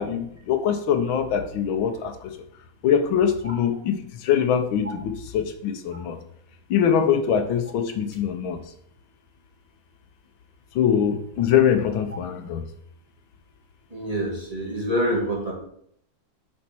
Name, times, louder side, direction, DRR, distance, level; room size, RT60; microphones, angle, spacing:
voice 1, 0.0-2.3 2.8-6.2 6.7-8.6 10.7-12.6, left 8 dB, 85° left, 7 dB, 1.6 m, -23 dB
voice 2, 13.9-15.5, equal, 20° right, -4 dB, 2.1 m, -26 dB
7.3 x 4.4 x 6.0 m, 0.68 s
omnidirectional pair, 2.2 m